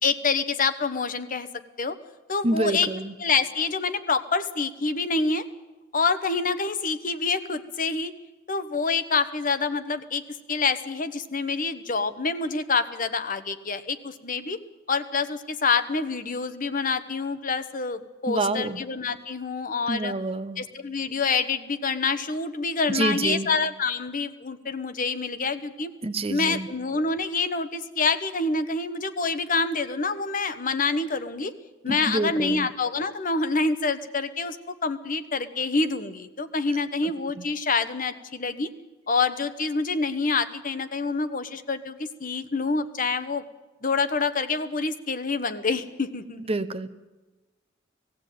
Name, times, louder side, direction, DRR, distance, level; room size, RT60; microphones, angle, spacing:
voice 1, 0.0-1.5 1.8-2.0 2.3-2.9 3.2-5.4 5.9-8.1 8.5-10.2 10.5-14.6 14.9-20.1 20.6-25.9 26.3-31.5 31.8-34.6 34.8-38.7 39.1-43.4 43.8-46.4, left 4 dB, 45° left, 11 dB, 1.1 m, -27 dB
voice 2, 2.4-3.1 18.3-18.8 19.9-20.6 22.9-23.5 26.0-26.7 31.9-32.7 37.0-37.4 46.5-46.9, right 2 dB, 30° right, 11 dB, 0.8 m, -27 dB
19.0 x 15.5 x 9.3 m, 1.1 s
head